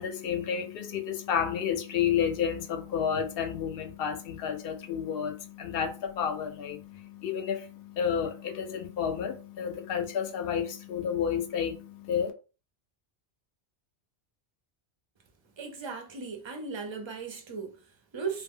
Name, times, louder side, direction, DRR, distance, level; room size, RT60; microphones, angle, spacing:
voice 1, 0.0-12.3, left 8 dB, 65° left, 0.7 m, -31 dB
voice 2, 15.6-18.4, right 5 dB, 40° right, 0.4 m, -37 dB
2.1 x 2.0 x 3.6 m
omnidirectional pair, 1.2 m